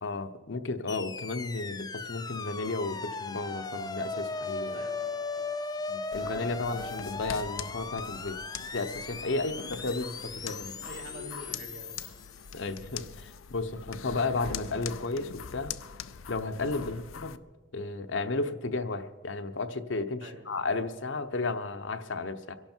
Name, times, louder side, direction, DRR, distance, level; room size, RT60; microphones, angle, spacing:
voice 1, 0.0-4.8 5.9-8.4 8.7-10.7 12.5-15.7 16.3-17.4 17.7-22.6, left 3 dB, 70° left, 9 dB, 0.9 m, -33 dB
sound 1, 0.9-13.1, left 4 dB, 20° left, 0.5 m, -38 dB
voice 2, 4.7-5.5 9.4-9.6 10.8-12.2 16.8-17.0 20.2-20.4, right 1 dB, 80° right, -1 dB, 3.3 m, -47 dB
sound 2, 6.1-17.4, left 8 dB, 90° left, 0.5 m, -43 dB
25.5 x 11.5 x 4.5 m, 1.4 s
head